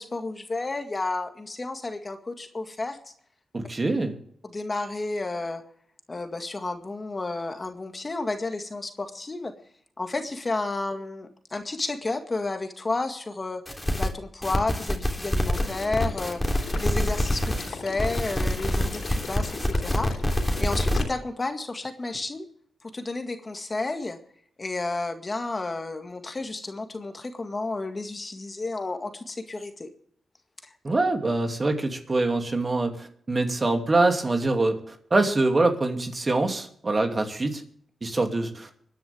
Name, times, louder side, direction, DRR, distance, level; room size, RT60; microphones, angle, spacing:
voice 1, 0.0-3.0 4.4-5.6 6.1-9.5 10.0-13.6 14.0-20.1 20.6-22.5 22.8-24.2 24.6-29.9 30.6-30.7, left 3 dB, 35° left, 6 dB, 1.9 m, -31 dB
voice 2, 3.5-4.2 30.8-37.6 38.0-38.7, right 2 dB, 35° right, 4 dB, 2.6 m, -24 dB
sound 1, 13.7-14.1 14.4-17.7 18.0-21.0, left 1 dB, 15° left, 3.3 m, -26 dB
Water / Liquid, 15.5-21.0, left 4 dB, 80° left, 3.7 m, -39 dB
25.0 x 10.5 x 3.5 m, 0.63 s
cardioid pair, 60°, 0 cm